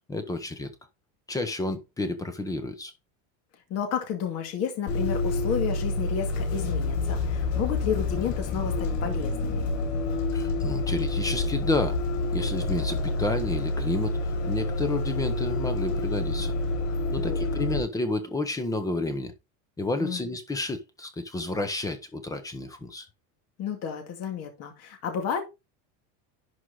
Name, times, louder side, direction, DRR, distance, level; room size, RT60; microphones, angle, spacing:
voice 1, 0.1-0.7 1.3-2.9 10.3-12.0 12.3-14.2 14.4-16.5 17.1-19.3 19.8-23.1, left 2 dB, 10° left, 0.9 m, -30 dB
voice 2, 3.7-9.7 17.2-17.4 20.0-20.2 23.6-25.4, left 8 dB, 40° left, 2.2 m, -31 dB
Bus, 4.9-17.8, left 2 dB, 80° left, 4.8 m, -28 dB
11.5 x 4.8 x 3.9 m
cardioid pair, 175°, 39 cm